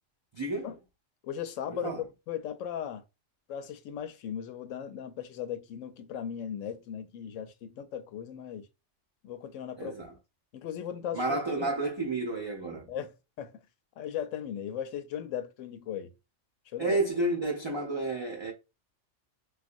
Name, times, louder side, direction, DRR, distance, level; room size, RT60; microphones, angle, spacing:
voice 1, 0.3-0.7 1.7-2.0 9.8-10.1 11.1-12.9 16.8-18.5, right 2 dB, 40° right, 0.4 m, -31 dB
voice 2, 1.2-3.0 3.5-8.7 9.2-10.0 10.5-11.7 12.9-13.5 14.0-16.1 16.7-17.0, left 9 dB, 85° left, 0.9 m, -37 dB
3.6 x 2.4 x 2.5 m
omnidirectional pair, 1.3 m